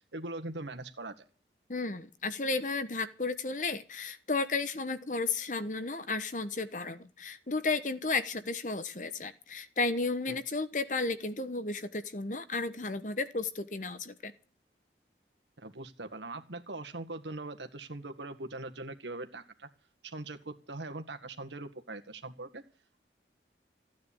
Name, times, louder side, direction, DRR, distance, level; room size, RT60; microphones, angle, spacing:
voice 1, 0.1-1.3 10.3-10.4 15.6-19.7 20.0-22.6, right 2 dB, 90° right, 7 dB, 1.8 m, -41 dB
voice 2, 1.7-14.3, left 3 dB, 45° left, 12 dB, 1.2 m, -33 dB
15.5 x 9.4 x 8.7 m, 0.42 s
head